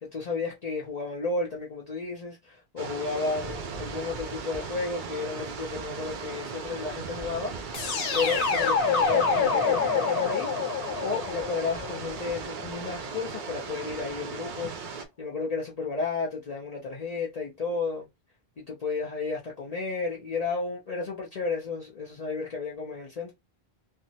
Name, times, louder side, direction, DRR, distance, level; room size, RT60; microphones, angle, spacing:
voice 1, 0.0-7.5 7.8-10.5 11.0-14.7 15.2-18.1 18.6-23.3, left 4 dB, 45° left, 0.7 m, -32 dB
sound 1, 2.8-15.1, right 5 dB, 60° right, 0.6 m, -37 dB
sound 2, 7.7-12.7, left 5 dB, 75° left, 1.0 m, -27 dB
3.3 x 2.0 x 2.7 m
omnidirectional pair, 1.0 m